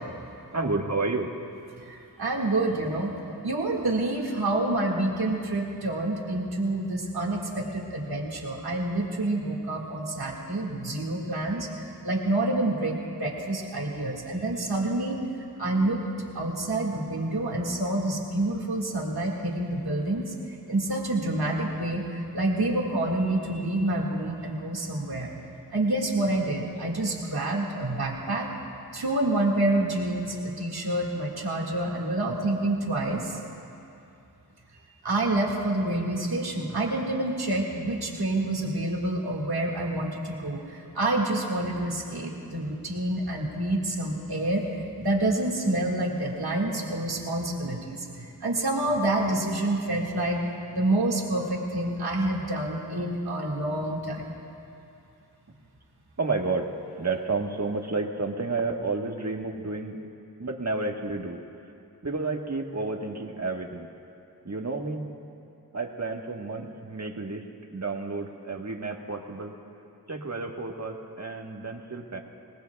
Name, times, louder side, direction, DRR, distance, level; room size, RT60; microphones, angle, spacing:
voice 1, 0.5-1.3 56.2-56.7 57.0-60.0 60.4-61.4 62.0-63.9 64.4-65.1 65.7-69.5 70.1-72.2, right 3 dB, 45° right, 2 dB, 1.4 m, -31 dB
voice 2, 1.9-3.1 3.4-11.7 12.0-15.2 15.6-16.0 16.4-20.3 20.7-25.3 25.7-28.5 28.9-33.4 35.0-50.4 50.7-54.3, right 1 dB, 90° right, -2 dB, 1.9 m, -28 dB
26.0 x 18.5 x 2.3 m, 2.7 s
wide cardioid pair, 40°, 37 cm